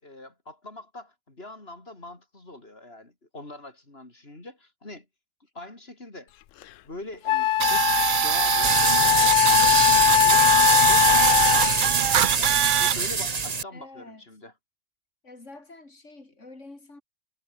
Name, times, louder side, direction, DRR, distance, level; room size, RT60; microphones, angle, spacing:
voice 1, 0.0-5.1 5.5-6.3 6.8-14.5, left 2 dB, 55° left, 4.9 m, -43 dB
Wind instrument woodwind instrument, 6.6-6.7 7.3-11.9, left 14 dB, 90° left, 1.0 m, -21 dB
sound 1, 7.6-12.9, right 10 dB, 55° right, 0.6 m, -23 dB
sound 2, 8.6-13.6, right 5 dB, 35° right, 1.1 m, -24 dB
voice 2, 13.7-14.2 15.2-17.0, left 2 dB, 75° left, 4.9 m, -46 dB
omnidirectional pair, 1.3 m